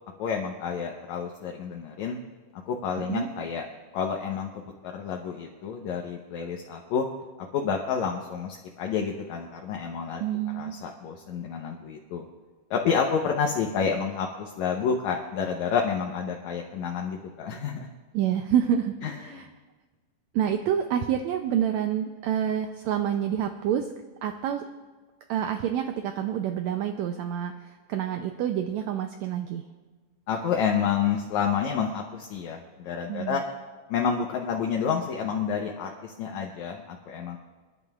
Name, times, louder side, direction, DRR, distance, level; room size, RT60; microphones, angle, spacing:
voice 1, 0.2-2.2 2.7-3.6 3.9-7.1 7.5-10.2 10.5-12.2 12.7-17.9 19.0-19.5 30.3-33.4 33.9-37.4, left 6 dB, 70° left, 1 dB, 2.0 m, -29 dB
voice 2, 3.0-3.3 10.2-10.7 18.1-19.5 20.3-23.9 24.2-24.6 25.3-29.6 33.1-33.4, right 9 dB, 85° right, 6 dB, 1.5 m, -28 dB
28.0 x 11.0 x 2.4 m, 1.3 s
omnidirectional pair, 3.8 m